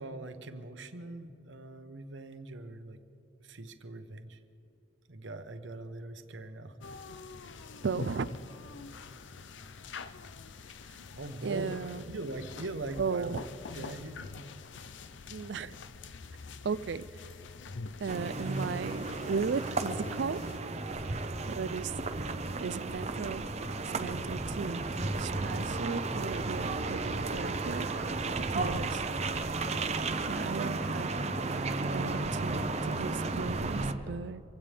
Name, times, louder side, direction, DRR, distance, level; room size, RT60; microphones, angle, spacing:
voice 1, 0.0-3.0 3.4-4.4 5.1-6.8 11.2-11.7 12.1-13.5 13.7-14.3, right 2 dB, 85° right, 8 dB, 1.0 m, -41 dB
sound 1, 6.8-20.6, left 4 dB, 80° left, 0.6 m, -45 dB
voice 2, 7.8-8.3 11.4-12.0 13.0-13.4 15.3-15.8 16.6-17.0 18.0-20.4 21.5-21.9 22.6-23.4 23.9-24.8 25.2-27.9 28.5-29.0 30.3-31.1 31.4-34.4, right 5 dB, 65° right, 15 dB, 0.4 m, -36 dB
sound 2, 18.1-33.9, right 3 dB, 35° right, 0.7 m, -33 dB
25.0 x 16.5 x 3.4 m, 2.8 s
head